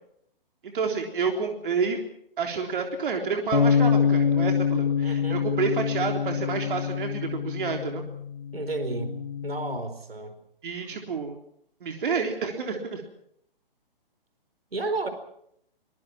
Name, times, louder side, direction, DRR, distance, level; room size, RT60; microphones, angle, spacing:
voice 1, 0.6-2.0 2.4-8.0 10.6-11.3 11.8-13.0, right 5 dB, 60° right, 3 dB, 3.7 m, -29 dB
sound 1, 3.5-9.8, left 6 dB, 80° left, 2.4 m, -25 dB
voice 2, 5.0-5.5 8.5-10.4 14.7-15.1, right 3 dB, 90° right, 9 dB, 4.7 m, -32 dB
25.0 x 21.0 x 6.1 m, 0.71 s
figure-of-eight pair, 135°, 29 cm